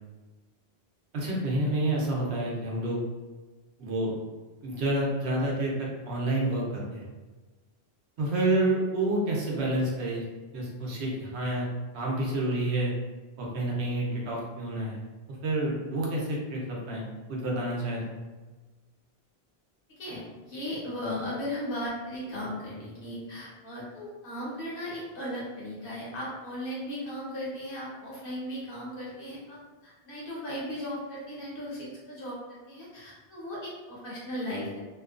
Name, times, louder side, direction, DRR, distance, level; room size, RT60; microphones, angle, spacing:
voice 1, 1.1-3.0 3.8-4.1 4.6-7.0 8.2-10.2 10.5-11.7 11.9-12.9 13.4-15.0 15.3-18.2, right 1 dB, 90° right, -3 dB, 1.0 m, -29 dB
voice 2, 20.0-34.8, left 1 dB, 60° left, -7 dB, 1.2 m, -37 dB
2.8 x 2.3 x 2.4 m, 1.2 s
omnidirectional pair, 1.1 m